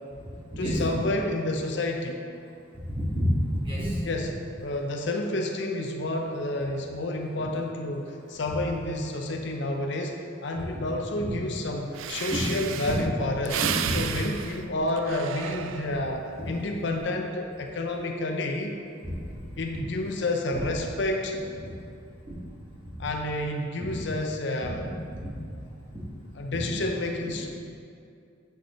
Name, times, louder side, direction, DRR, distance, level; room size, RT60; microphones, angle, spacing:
voice 1, 0.6-2.2 4.1-4.3 4.6-13.6 13.9-18.8 19.6-21.4 23.0-24.8 26.4-27.5, left 2 dB, 65° left, 2 dB, 0.6 m, -30 dB
voice 2, 2.7-4.0 7.4-7.5 11.2-11.3 12.3-12.4 13.8-14.0 16.4-16.5 23.8-23.9 25.2-25.3 26.5-26.8, equal, 25° right, -7 dB, 1.8 m, -28 dB
Breathing, 11.6-11.7 11.9-16.2 16.7-17.0, right 8 dB, 85° right, 0.4 m, -33 dB
8.1 x 6.5 x 3.1 m, 2.4 s
head